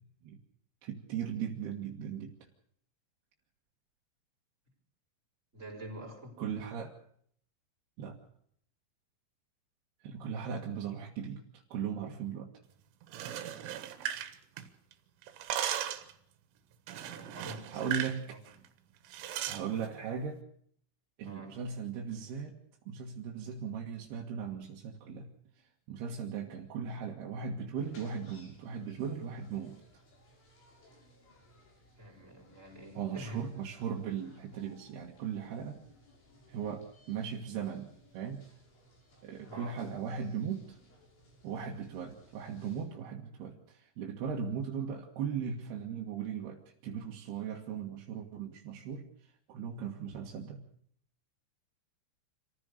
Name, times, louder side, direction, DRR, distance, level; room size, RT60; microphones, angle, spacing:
voice 1, 0.8-2.3 6.4-6.9 8.0-8.2 10.0-12.5 17.7-18.4 19.5-20.4 21.2-22.6 22.9-25.3 25.9-29.8 33.0-35.8 36.5-38.5 39.2-40.8 41.4-49.1 49.5-50.7, right 7 dB, 65° right, -1 dB, 3.5 m, -38 dB
voice 2, 5.5-6.4 17.1-18.4 19.7-20.1 21.2-21.6 32.0-33.5 39.5-39.9, equal, 15° right, -1 dB, 4.7 m, -47 dB
sound 1, 13.0-14.9 15.2-16.1 16.9-18.2 18.5-18.7 19.1-19.6, right 10 dB, 85° right, 3.8 m, -37 dB
sound 2, 27.8-42.9, left 1 dB, 70° left, 8.4 m, -62 dB
27.0 x 15.0 x 6.6 m, 0.65 s
omnidirectional pair, 5.5 m